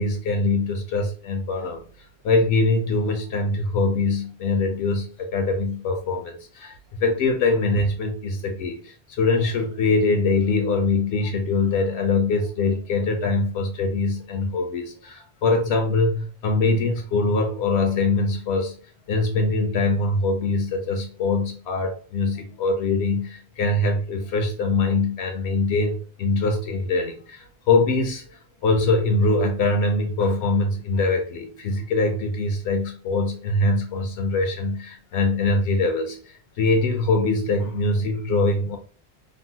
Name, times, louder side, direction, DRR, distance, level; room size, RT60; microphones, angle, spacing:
voice 1, 0.0-1.8 2.2-18.7 19.1-38.8, left 3 dB, 75° left, 4 dB, 0.8 m, -23 dB
3.3 x 2.0 x 2.7 m, 0.39 s
omnidirectional pair, 1.1 m